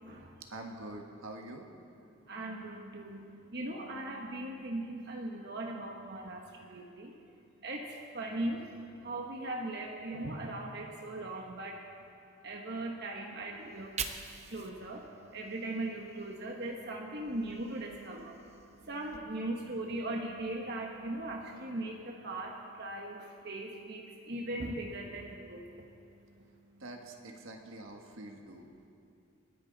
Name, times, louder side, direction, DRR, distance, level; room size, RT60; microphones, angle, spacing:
voice 1, 0.5-1.7 26.8-28.9, right 2 dB, 80° right, 3 dB, 1.6 m, -46 dB
voice 2, 2.3-11.9 12.4-18.4 18.9-25.7, right 1 dB, 50° right, 0 dB, 1.2 m, -39 dB
Fire, 13.6-16.8 17.1-19.2, right 6 dB, 30° right, 0.7 m, -46 dB
28.0 x 10.0 x 4.1 m, 2.6 s
head